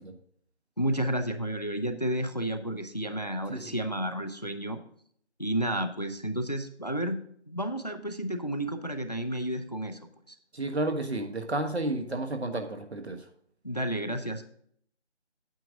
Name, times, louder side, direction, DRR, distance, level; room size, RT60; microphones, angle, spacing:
voice 1, 0.8-4.8 5.4-7.2 7.5-10.0 10.3-10.4 13.6-14.5, right 1 dB, 35° left, 9 dB, 0.6 m, -31 dB
voice 2, 10.5-13.2, right 2 dB, 70° right, 5 dB, 1.4 m, -31 dB
9.1 x 7.2 x 3.7 m, 0.65 s
figure-of-eight pair, 180°, 34 cm